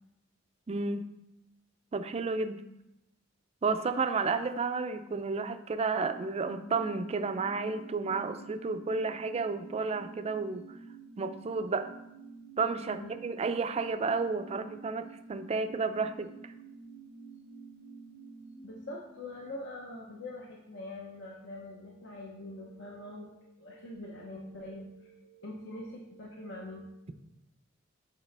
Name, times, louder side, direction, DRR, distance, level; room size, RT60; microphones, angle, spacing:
voice 1, 0.7-1.0 1.9-2.6 3.6-10.6 11.2-11.9 12.6-16.3, right 4 dB, 30° right, 9 dB, 0.4 m, -31 dB
sound 1, 5.6-20.7 21.0-21.1, right 4 dB, 45° left, 1.5 m, -50 dB
voice 2, 18.6-27.0, left 1 dB, 60° left, -2 dB, 0.8 m, -44 dB
8.1 x 4.8 x 3.4 m, 0.88 s
head